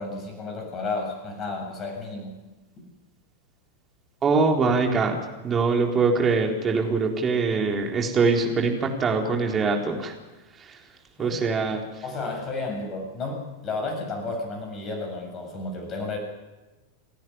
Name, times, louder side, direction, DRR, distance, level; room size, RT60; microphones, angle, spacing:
voice 1, 0.0-2.4 11.2-11.4 12.0-16.2, left 3 dB, 30° left, 3 dB, 7.7 m, -32 dB
voice 2, 4.2-10.1 11.2-11.8, right 4 dB, 20° right, 1 dB, 3.9 m, -23 dB
29.5 x 10.5 x 9.9 m, 1.1 s
figure-of-eight pair, 90°, 0 cm